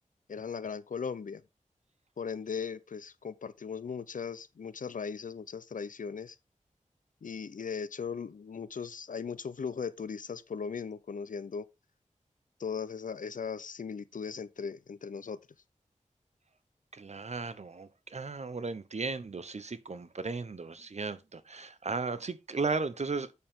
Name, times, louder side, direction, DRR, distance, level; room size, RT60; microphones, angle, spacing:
voice 1, 0.3-1.4 2.2-6.4 7.2-11.6 12.6-15.4, left 6 dB, 80° left, 0.7 m, -38 dB
voice 2, 16.9-23.3, right 4 dB, 55° right, 0.9 m, -35 dB
8.4 x 6.8 x 3.7 m
wide cardioid pair, 55°, 13 cm